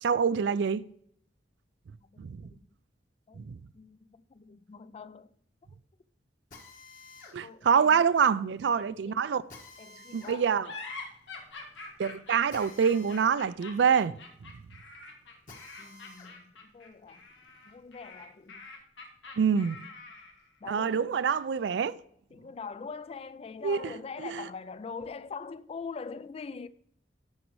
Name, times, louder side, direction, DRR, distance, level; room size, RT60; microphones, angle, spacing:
voice 1, 0.0-0.8 2.2-2.4 3.4-3.6 7.3-9.4 10.1-10.7 12.0-14.1 14.4-14.5 19.4-19.8 20.7-22.0 23.6-23.9 24.2-24.5, right 6 dB, 70° right, 0.4 m, -26 dB
voice 2, 2.0-2.6 3.3-3.4 3.7-5.3 7.4-8.0 8.7-9.3 9.8-10.5 15.8-17.3 17.7-18.7 20.6-21.1 22.3-26.7, left 5 dB, 35° left, 0.3 m, -43 dB
Drill, 6.5-16.3 16.8-18.4, left 3 dB, 50° left, 1.6 m, -54 dB
sound 1, 10.6-20.5, left 3 dB, 80° left, 1.4 m, -45 dB
12.5 x 5.3 x 3.1 m
head